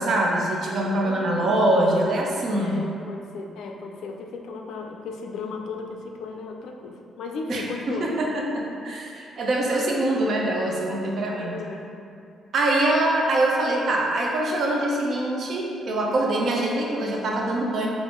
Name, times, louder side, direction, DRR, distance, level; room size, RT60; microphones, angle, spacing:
voice 1, 0.0-2.8 7.5-11.6 12.5-17.9, right 1 dB, 55° right, -1 dB, 0.6 m, -24 dB
voice 2, 1.0-8.1 11.4-11.9, left 4 dB, 80° left, 2 dB, 0.3 m, -36 dB
3.4 x 2.5 x 3.6 m, 2.5 s
cardioid pair, 90°, 0 cm